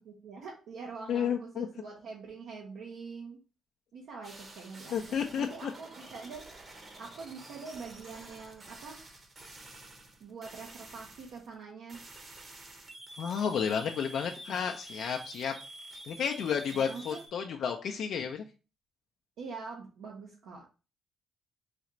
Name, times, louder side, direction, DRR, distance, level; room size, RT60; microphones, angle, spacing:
voice 1, 0.0-3.4 3.9-6.4 7.0-9.0 10.2-12.0 16.7-17.2 19.4-20.6, right 4 dB, 80° right, -1 dB, 0.8 m, -44 dB
voice 2, 1.1-1.7 4.9-5.7 13.2-15.5 16.1-18.4, left 7 dB, 70° left, 3 dB, 0.4 m, -32 dB
sound 1, 4.2-11.6 11.9-17.3, right 2 dB, 40° right, 1.0 m, -49 dB
4.1 x 2.4 x 2.9 m, 0.33 s
cardioid pair, 90°, 0 cm